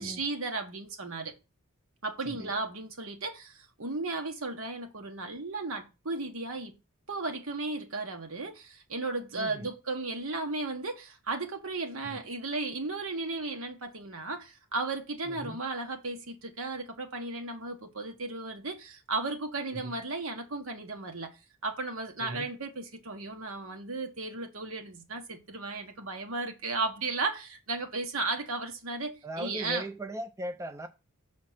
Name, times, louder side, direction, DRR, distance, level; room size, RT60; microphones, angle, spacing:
voice 1, 0.0-1.3 2.0-6.7 7.1-21.3 21.6-29.8, right 3 dB, 70° right, 1.4 m, -35 dB
voice 2, 9.4-9.7 12.0-12.2 15.3-15.6 19.7-20.0 22.2-22.5 29.2-30.9, right 1 dB, 15° right, 0.4 m, -38 dB
6.3 x 4.3 x 5.7 m
head